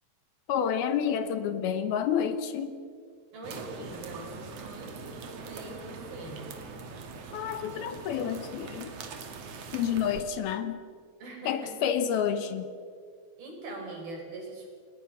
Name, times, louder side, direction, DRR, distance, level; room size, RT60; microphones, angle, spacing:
voice 1, 0.5-2.8 7.3-9.0 9.7-10.8 11.5-12.7, left 8 dB, 75° left, 10 dB, 2.9 m, -29 dB
voice 2, 3.3-6.5 11.2-11.7 13.4-14.7, right 2 dB, 65° right, 0 dB, 6.8 m, -42 dB
sound 1, 3.4-10.2, right 4 dB, 50° right, 2.2 m, -42 dB
29.5 x 18.5 x 6.2 m, 2.1 s
omnidirectional pair, 4.6 m